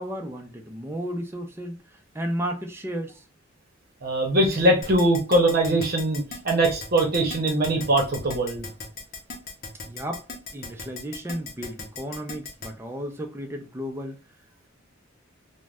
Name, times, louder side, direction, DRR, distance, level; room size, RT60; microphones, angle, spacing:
voice 1, 0.0-1.8 2.1-3.2 9.9-10.2 10.5-14.2, equal, 15° right, 0.5 m, -33 dB
voice 2, 4.0-8.6, right 1 dB, 50° right, 0.8 m, -22 dB
Keyboard (musical), 4.8-12.7, left 4 dB, 50° left, 0.7 m, -37 dB
2.5 x 2.1 x 3.3 m
head